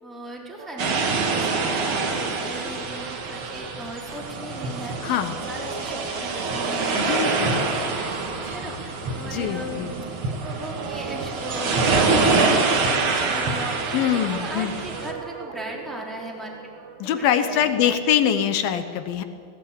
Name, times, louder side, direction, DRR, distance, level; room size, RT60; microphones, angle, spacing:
voice 1, 0.0-10.1 10.4-12.2 12.5-16.5 17.0-18.0, right 1 dB, ahead, -2 dB, 2.3 m, -38 dB
sound 1, 0.6-17.3, right 6 dB, 65° right, 3.7 m, -41 dB
sound 2, 0.8-15.1, right 3 dB, 85° right, 1.1 m, -25 dB
voice 2, 5.0-5.4 7.0-7.7 9.3-10.0 13.9-14.7 17.0-19.2, left 9 dB, 75° left, 10 dB, 2.2 m, -23 dB
19.0 x 16.5 x 8.8 m, 2.2 s
omnidirectional pair, 5.5 m